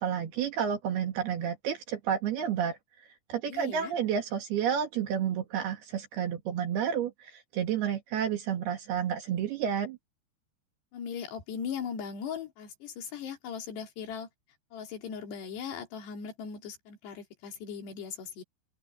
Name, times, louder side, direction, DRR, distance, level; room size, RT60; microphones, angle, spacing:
voice 1, 0.0-2.8 3.3-10.0, right 8 dB, 70° right, 3.8 m, -30 dB
voice 2, 3.5-3.9 10.9-14.3 14.7-18.4, left 7 dB, 75° left, 5.2 m, -39 dB
open air
omnidirectional pair, 4.9 m